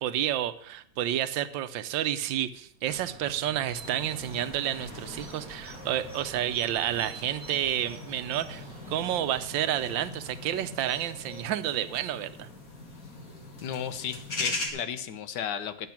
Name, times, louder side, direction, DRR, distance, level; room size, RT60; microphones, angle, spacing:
voice 1, 0.0-12.5, right 11 dB, 85° right, 13 dB, 1.4 m, -30 dB
sound 1, 2.9-10.1, right 5 dB, 55° right, 1.5 m, -50 dB
sound 2, 3.7-14.7, left 2 dB, 50° left, 2.3 m, -41 dB
sound 3, 3.7-11.4, equal, 30° left, 5.0 m, -49 dB
voice 2, 13.6-15.9, left 8 dB, 70° left, 11 dB, 1.4 m, -34 dB
11.0 x 7.6 x 5.8 m, 0.69 s
omnidirectional pair, 2.0 m